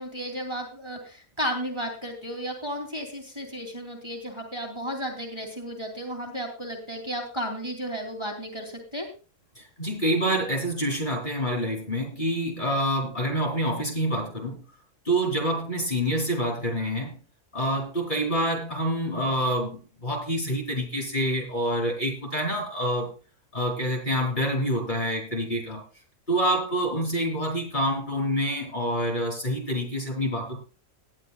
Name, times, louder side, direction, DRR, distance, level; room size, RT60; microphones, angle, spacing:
voice 1, 0.0-9.1, equal, 20° right, 1 dB, 3.0 m, -33 dB
voice 2, 9.6-14.6 15.1-17.2 17.5-23.1 23.5-25.8 26.3-30.6, equal, 35° left, -1 dB, 3.8 m, -27 dB
19.0 x 11.5 x 2.3 m, 0.35 s
omnidirectional pair, 1.4 m